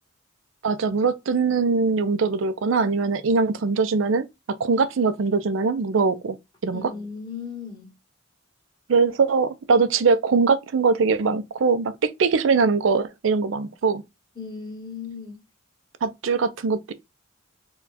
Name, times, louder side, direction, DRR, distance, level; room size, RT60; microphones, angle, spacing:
voice 1, 0.6-4.3 4.6-6.4 6.6-6.8 8.9-14.0 16.0-16.9, right 4 dB, 75° right, 0.5 m, -22 dB
voice 2, 6.7-7.9 14.4-15.4, left 5 dB, 20° left, 1.8 m, -36 dB
4.4 x 2.3 x 4.0 m
head